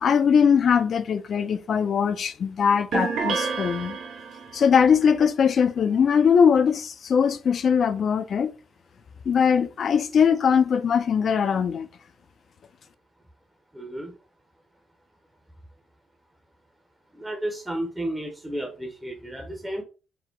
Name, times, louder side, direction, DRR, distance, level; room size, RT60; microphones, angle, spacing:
voice 1, 0.0-4.0 4.5-8.5 9.3-11.9, left 7 dB, 55° left, 0.4 m, -21 dB
sound 1, 2.9-4.7, right 5 dB, 80° right, 0.8 m, -29 dB
voice 2, 13.7-14.1 17.1-19.8, right 1 dB, 10° right, 0.7 m, -32 dB
4.4 x 2.1 x 3.7 m
cardioid pair, 115°, 0 cm